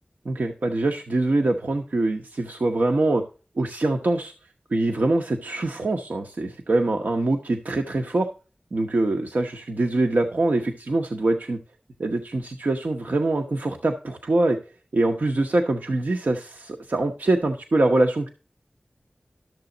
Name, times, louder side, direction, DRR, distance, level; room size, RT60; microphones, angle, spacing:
voice 1, 0.2-3.2 3.6-4.3 4.7-8.3 8.7-11.6 12.0-14.6 14.9-18.3, right 2 dB, 75° right, 2 dB, 0.9 m, -24 dB
12.0 x 6.8 x 3.9 m, 0.35 s
wide cardioid pair, 50°, 3 cm